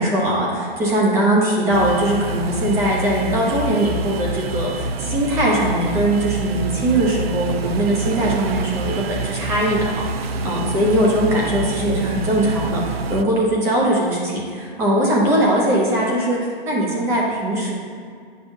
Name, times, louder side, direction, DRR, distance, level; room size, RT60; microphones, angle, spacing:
voice 1, 0.0-12.8 13.1-17.7, right 1 dB, 10° right, -3 dB, 0.6 m, -20 dB
sound 1, 1.7-13.2, right 3 dB, 80° right, 0.5 m, -27 dB
10.0 x 5.4 x 2.7 m, 2.2 s
hypercardioid pair, 170°, 30 cm